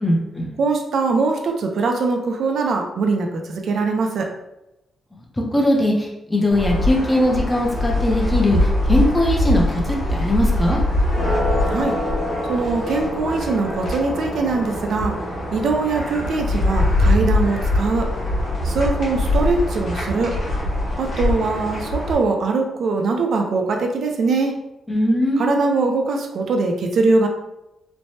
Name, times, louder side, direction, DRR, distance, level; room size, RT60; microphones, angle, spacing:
voice 1, 0.0-0.5 5.5-10.8 24.9-25.5, left 1 dB, 10° left, -1 dB, 0.5 m, -20 dB
voice 2, 0.6-4.3 11.7-12.0 12.5-15.1 15.5-18.1 18.6-20.3 21.0-24.5 25.4-27.3, right 3 dB, 60° right, 3 dB, 0.4 m, -22 dB
sound 1, 6.5-22.1, left 1 dB, 50° left, 1.2 m, -22 dB
3.2 x 2.1 x 2.7 m, 0.90 s
wide cardioid pair, 160°, 0 cm